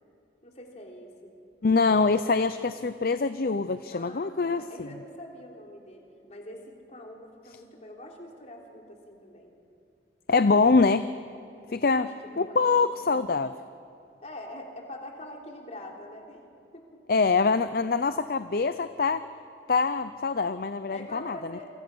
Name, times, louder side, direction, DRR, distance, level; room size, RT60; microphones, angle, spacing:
voice 1, 0.4-1.3 3.9-9.5 11.7-13.2 14.2-16.4 16.7-17.0 20.9-21.7, left 1 dB, 40° left, 0 dB, 3.6 m, -44 dB
voice 2, 1.6-4.6 10.3-11.1 11.7-12.1 12.4-13.5 17.1-19.2 19.7-21.3, left 4 dB, 55° left, 12 dB, 0.6 m, -24 dB
28.5 x 24.5 x 6.2 m, 2.5 s
head